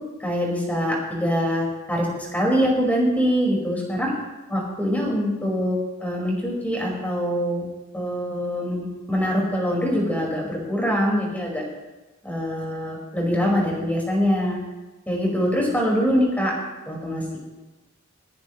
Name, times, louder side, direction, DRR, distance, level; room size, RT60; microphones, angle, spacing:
voice 1, 0.2-4.1 4.5-7.6 7.9-11.6 12.2-14.6 15.1-16.5 16.9-17.4, equal, 10° left, -3 dB, 5.0 m, -24 dB
20.5 x 16.5 x 3.2 m, 1.1 s
head